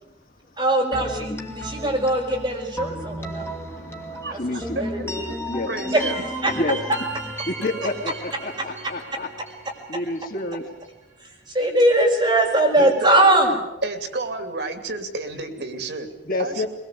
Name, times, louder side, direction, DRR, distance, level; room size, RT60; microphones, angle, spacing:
voice 1, 0.6-3.5 4.3-4.4 4.8-5.2 5.9-6.0 6.4-6.6 8.6-8.7 11.5-13.6, right 1 dB, 25° right, -1 dB, 6.1 m, -20 dB
sound 1, 0.9-10.7, right 1 dB, 15° left, 2.5 m, -34 dB
voice 2, 3.6-4.8 5.5-5.7 6.6-6.8 7.5-9.3 9.9-10.7 16.2-16.7, left 2 dB, 55° left, 2 dB, 2.6 m, -29 dB
voice 3, 4.2-5.1 5.7-6.2 12.8-13.2 13.8-16.1 16.4-16.7, right 2 dB, 70° right, 7 dB, 2.8 m, -30 dB
23.0 x 21.5 x 8.4 m, 0.93 s
head